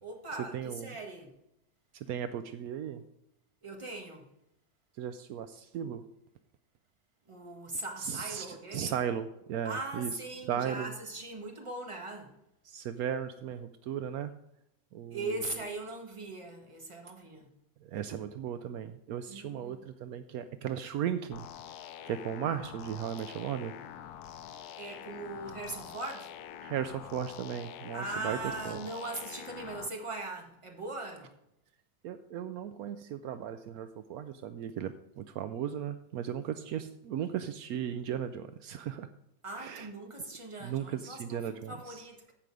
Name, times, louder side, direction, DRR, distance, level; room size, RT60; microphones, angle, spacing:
voice 1, 0.0-1.3 3.6-4.3 7.3-9.0 9.6-12.4 15.1-17.5 19.3-19.8 24.8-26.4 27.9-31.3 39.4-42.3, right 2 dB, 20° right, 1.6 m, -40 dB
voice 2, 0.5-0.9 1.9-3.0 5.0-6.1 8.0-8.5 8.7-10.1 10.5-10.9 12.6-14.3 14.9-15.5 17.8-21.5 22.0-23.7 26.6-28.4 28.6-28.8 32.0-39.1 39.6-39.9 40.6-42.0, right 9 dB, 75° right, 1.0 m, -36 dB
sound 1, 21.3-29.9, left 10 dB, 85° left, 1.1 m, -46 dB
14.5 x 5.3 x 4.8 m
omnidirectional pair, 1.6 m